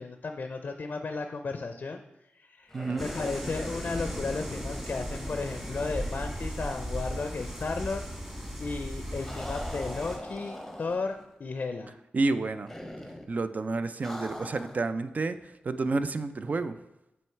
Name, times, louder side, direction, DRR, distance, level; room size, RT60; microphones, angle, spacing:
voice 1, 0.0-8.0 8.6-11.9, left 4 dB, 55° left, 6 dB, 0.5 m, -34 dB
sound 1, 2.7-6.8 7.1-7.2 9.2-11.2 12.7-13.3 14.0-14.9, equal, 5° left, 0.8 m, -42 dB
sound 2, 3.0-10.2, equal, 15° right, 1.4 m, -37 dB
voice 2, 12.1-12.7 13.3-16.8, right 3 dB, 45° right, 11 dB, 0.4 m, -30 dB
7.7 x 3.1 x 4.4 m, 0.89 s
wide cardioid pair, 80°, 4 cm